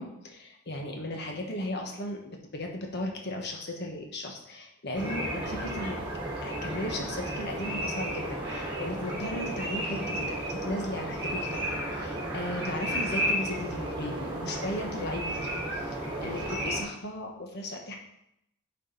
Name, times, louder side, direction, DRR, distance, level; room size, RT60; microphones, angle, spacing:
voice 1, 0.0-6.0 6.4-18.0, left 1 dB, 55° left, 1 dB, 1.3 m, -36 dB
sound 1, 4.9-16.8, right 1 dB, 25° right, 2.5 m, -33 dB
9.2 x 5.0 x 4.0 m, 0.78 s
head